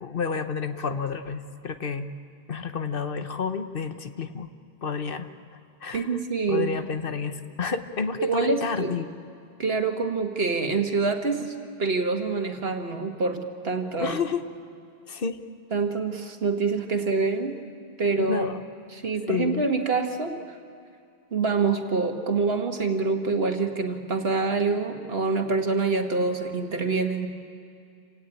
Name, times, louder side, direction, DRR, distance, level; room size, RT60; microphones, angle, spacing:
voice 1, 0.0-2.1 2.5-4.5 4.8-5.3 5.8-6.1 6.5-9.1 14.0-14.4 15.1-15.4 18.2-18.6 19.3-19.7, left 5 dB, 60° left, 9 dB, 1.2 m, -30 dB
voice 2, 5.9-6.7 8.2-9.0 9.6-11.5 11.8-14.2 15.7-17.6 18.0-18.6 18.9-20.4 21.3-27.3, right 4 dB, 70° right, 4 dB, 2.0 m, -26 dB
28.0 x 18.0 x 9.1 m, 2.5 s
omnidirectional pair, 1.0 m